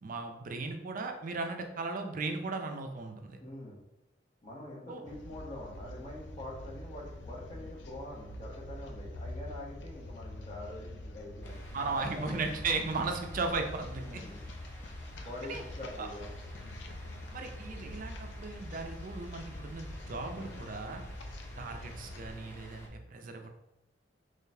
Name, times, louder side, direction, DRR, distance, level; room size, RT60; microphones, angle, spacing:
voice 1, 0.0-3.4 4.9-5.0 11.7-14.2 15.5-15.6 16.0-16.1 17.3-21.0 21.6-23.5, right 3 dB, 45° right, 4 dB, 0.5 m, -36 dB
voice 2, 3.4-3.8 4.4-12.4 14.0-14.4 15.2-16.3, left 1 dB, 35° left, -3 dB, 0.9 m, -45 dB
sound 1, 5.1-22.3, left 1 dB, 70° left, 0.4 m, -45 dB
sound 2, 11.4-22.9, equal, 15° left, 0.5 m, -50 dB
3.8 x 3.2 x 2.7 m, 0.90 s
head